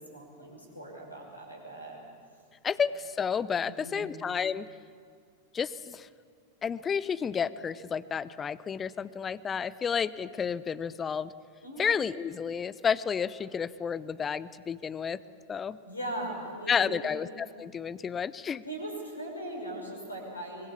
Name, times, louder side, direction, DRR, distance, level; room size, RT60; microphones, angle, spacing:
voice 1, 0.0-2.0 3.7-4.1 11.6-12.0 15.8-17.2 18.6-20.7, right 1 dB, 80° left, 1 dB, 5.5 m, -39 dB
voice 2, 2.6-4.7 5.5-6.1 6.6-11.3 11.8-15.2 15.5-15.8 16.7-18.6, left 6 dB, 20° left, 17 dB, 0.6 m, -31 dB
23.5 x 21.5 x 7.3 m, 2.2 s
figure-of-eight pair, 90°, 0 cm